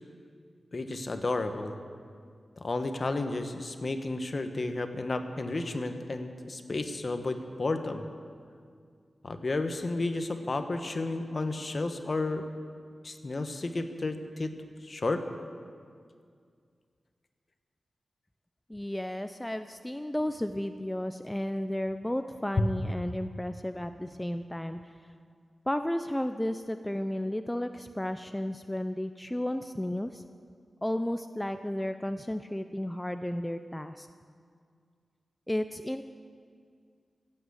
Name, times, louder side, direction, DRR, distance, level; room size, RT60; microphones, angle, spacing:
voice 1, 0.7-1.7 2.6-8.0 9.2-12.4 13.0-14.5 14.8-15.2 22.6-22.7, left 2 dB, 45° left, 8 dB, 1.1 m, -32 dB
voice 2, 18.7-24.9 25.7-30.2 30.8-34.1 35.5-36.0, left 1 dB, 10° left, 9 dB, 0.4 m, -33 dB
15.0 x 8.8 x 8.0 m, 2.2 s
wide cardioid pair, 80°, 0 cm